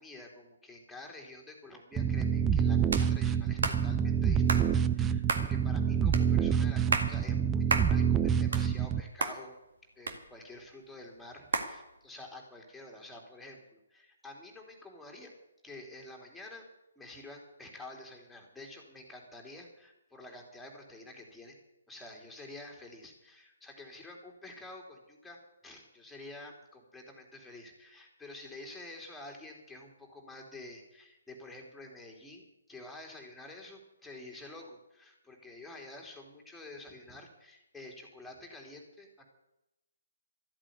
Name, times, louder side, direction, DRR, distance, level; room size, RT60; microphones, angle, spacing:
voice 1, 0.0-9.5 9.9-15.3 15.6-16.6 16.9-21.6 21.9-25.4 25.6-39.2, left 2 dB, ahead, 0 dB, 3.3 m, -49 dB
sound 1, 2.0-9.0, right 7 dB, 15° right, 0.6 m, -27 dB
sound 2, 2.9-3.1 3.6-3.8 4.5-4.7 5.3-5.5 6.1-6.3 6.7-7.1 7.7-7.9 8.3-8.9 9.2-9.4 10.1-10.6 11.5-11.7, right 4 dB, 65° right, 2.0 m, -30 dB
13.5 x 8.8 x 9.5 m, 0.90 s
figure-of-eight pair, 135°, 0 cm